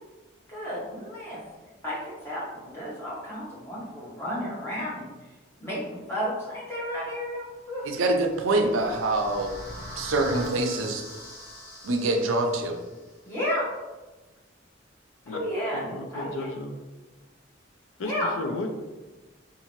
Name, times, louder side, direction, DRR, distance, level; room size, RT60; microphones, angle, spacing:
voice 1, 0.5-1.4 1.8-5.1 5.6-7.9 13.2-13.7 15.3-15.8 16.1-16.5 18.0-18.3, equal, 10° left, -8 dB, 0.9 m, -32 dB
sound 1, 7.8-12.9, equal, 50° left, 0.8 m, -41 dB
voice 2, 7.8-9.6 10.0-11.0 11.8-12.8, right 2 dB, 90° right, 4 dB, 0.4 m, -25 dB
voice 3, 15.7-16.7 18.0-18.7, left 2 dB, 85° left, 4 dB, 0.4 m, -34 dB
2.7 x 2.5 x 2.9 m, 1.2 s
head